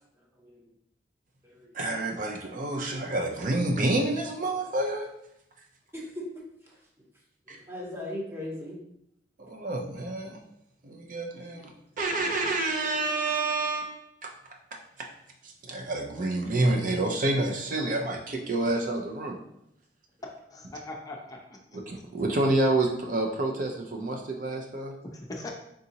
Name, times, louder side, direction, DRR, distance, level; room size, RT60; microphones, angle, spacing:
voice 1, 1.7-5.1 7.5-7.6 9.4-10.4 10.8-11.7 12.0-14.3 15.0-15.1 15.4-19.4 21.7-24.9, right 2 dB, 50° right, 2 dB, 0.5 m, -28 dB
voice 2, 5.9-6.7 7.7-8.8 11.3-11.4, left 1 dB, 15° right, -3 dB, 0.9 m, -38 dB
voice 3, 20.5-21.8 25.0-25.5, left 2 dB, 20° left, 0 dB, 0.5 m, -41 dB
3.9 x 3.6 x 2.8 m, 0.78 s
head